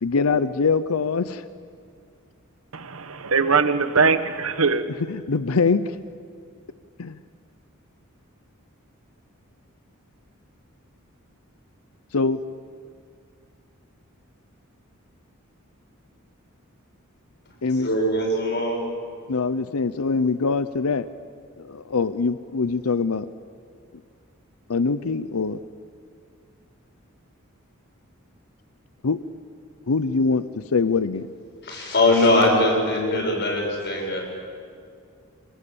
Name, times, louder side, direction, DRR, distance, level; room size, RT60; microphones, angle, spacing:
voice 1, 0.0-1.4 5.1-6.0 7.0-7.2 12.1-12.4 17.6-17.9 19.3-21.1 21.6-23.3 24.7-25.6 29.0-29.2 29.9-31.3, left 4 dB, 90° left, 0.7 m, -23 dB
voice 2, 2.7-4.8, right 5 dB, 70° right, 1.2 m, -21 dB
voice 3, 17.8-18.8 31.6-34.2, left 1 dB, 55° left, 7.3 m, -21 dB
27.5 x 19.5 x 8.6 m
head